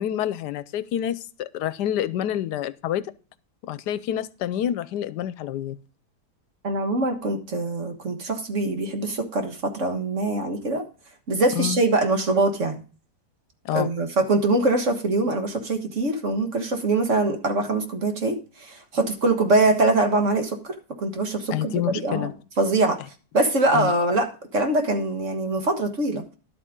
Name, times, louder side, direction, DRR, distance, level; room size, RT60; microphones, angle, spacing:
voice 1, 0.0-3.1 3.7-5.8 11.6-11.8 13.6-13.9 21.5-22.3 23.7-23.9, left 11 dB, 80° left, 16 dB, 1.2 m, -27 dB
voice 2, 6.6-10.8 11.3-12.8 13.7-22.3 22.6-23.0 23.3-26.2, right 2 dB, 50° right, 5 dB, 1.7 m, -23 dB
11.5 x 8.2 x 3.7 m, 0.35 s
omnidirectional pair, 1.8 m